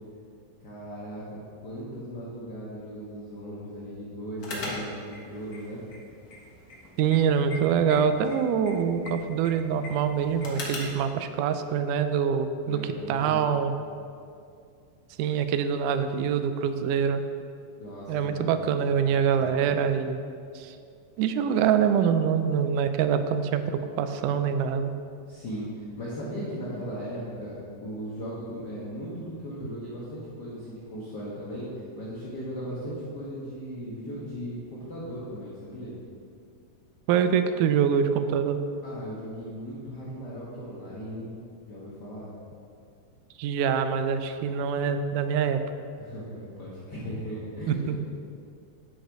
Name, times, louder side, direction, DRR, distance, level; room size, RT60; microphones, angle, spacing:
voice 1, 0.6-1.4 1.6-5.8 12.6-13.7 17.8-18.8 19.3-19.5 25.3-35.9 38.8-41.3 41.7-42.3 46.0-48.0, equal, 55° left, -7 dB, 1.2 m, -37 dB
sound 1, 4.4-11.0, left 2 dB, 80° left, 0.8 m, -41 dB
voice 2, 7.0-13.7 15.2-17.2 18.1-20.2 20.6-20.8 21.2-24.9 37.1-38.6 43.4-45.6 47.7-48.0, right 7 dB, 80° right, 9 dB, 1.9 m, -25 dB
10.0 x 6.5 x 4.7 m, 2.4 s
omnidirectional pair, 4.0 m